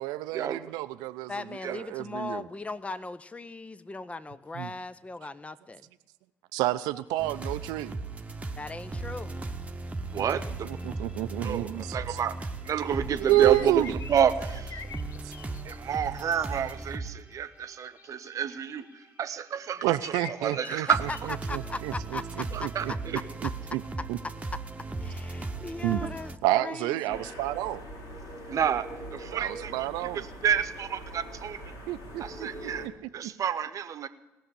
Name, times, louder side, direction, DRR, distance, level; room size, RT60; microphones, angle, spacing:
voice 1, 0.0-2.5 4.5-4.7 6.5-8.0 10.2-10.3 10.6-12.2 13.2-13.9 15.2-15.3 19.8-23.8 24.1-24.2 25.8-26.0 26.4-27.9 29.3-30.3 31.9-32.9 33.2-33.3, right 16 dB, 70° right, 14 dB, 0.5 m, -30 dB
voice 2, 1.3-5.8 8.6-9.3 20.7-22.2 22.6-23.0 25.0-27.3, left 3 dB, 20° left, 13 dB, 0.7 m, -38 dB
sound 1, 7.2-17.1 17.8-17.9 18.8-18.9 20.9-26.4, right 3 dB, 20° right, 1.1 m, -37 dB
voice 3, 10.1-10.7 11.4-11.7 11.9-14.8 15.6-18.9 19.2-20.1 20.4-21.0 22.5-22.9 26.0-26.1 28.5-29.9 30.1-31.6 32.2-32.8 33.1-34.1, right 8 dB, 50° right, 13 dB, 1.0 m, -29 dB
sound 2, 13.2-16.0 17.7-19.4 19.7-21.6, left 6 dB, 45° left, 0.9 m, -46 dB
sound 3, 27.1-32.9, right 1 dB, 65° left, 2.7 m, -42 dB
18.0 x 6.5 x 9.9 m, 1.1 s
hypercardioid pair, 55°, 7 cm